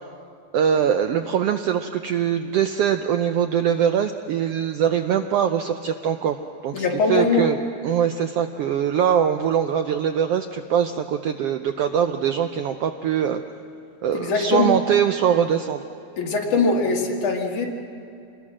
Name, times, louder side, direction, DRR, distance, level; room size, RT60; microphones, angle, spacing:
voice 1, 0.5-6.4 6.6-7.6 7.8-13.4 14.0-15.8, right 8 dB, 85° right, 7 dB, 1.4 m, -22 dB
voice 2, 6.7-7.5 14.1-14.8 16.2-17.7, left 4 dB, 80° left, 0 dB, 3.6 m, -21 dB
27.0 x 21.0 x 6.2 m, 2.6 s
omnidirectional pair, 3.4 m